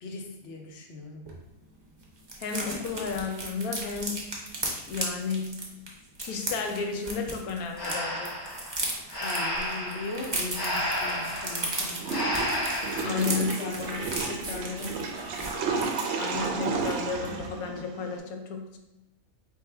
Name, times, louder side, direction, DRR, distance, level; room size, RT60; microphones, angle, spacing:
voice 1, 0.0-1.3 9.2-12.2 13.0-13.3 13.6-13.9 14.2-15.0, left 3 dB, 60° left, 2 dB, 1.0 m, -38 dB
sound 1, 1.3-1.4 1.6-1.7 2.0-7.9 8.2-16.5 16.8-17.0 17.2-17.5, right 2 dB, 30° right, 0.5 m, -36 dB
voice 2, 2.4-4.2 4.9-5.6 6.2-8.4 13.0-14.0 16.2-18.8, left 5 dB, 85° left, 4 dB, 1.1 m, -32 dB
Breathing, 7.8-13.3, equal, 25° left, 0.6 m, -32 dB
Water / Toilet flush, 12.0-18.2, right 4 dB, 65° right, 0.7 m, -32 dB
4.4 x 3.2 x 3.4 m, 0.93 s
omnidirectional pair, 1.5 m